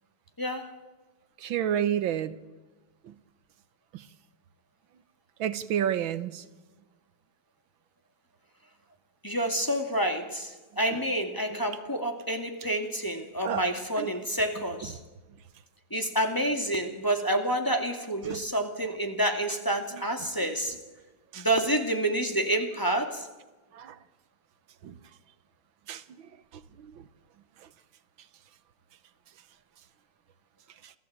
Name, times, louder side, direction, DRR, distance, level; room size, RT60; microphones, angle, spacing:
voice 1, 0.4-0.7 9.2-15.0 15.9-20.8 21.3-23.3, right 1 dB, 10° left, 3 dB, 2.3 m, -28 dB
voice 2, 1.4-2.4 3.0-3.1 3.9-4.0 5.4-6.4 13.5-13.6 14.0-14.1 18.3-18.4 21.3-21.5 23.7-24.0 24.8-25.0 25.9-26.0 26.8-26.9 30.8-30.9, right 10 dB, 85° right, 13 dB, 1.8 m, -30 dB
28.5 x 16.0 x 8.8 m, 1.3 s
omnidirectional pair, 2.1 m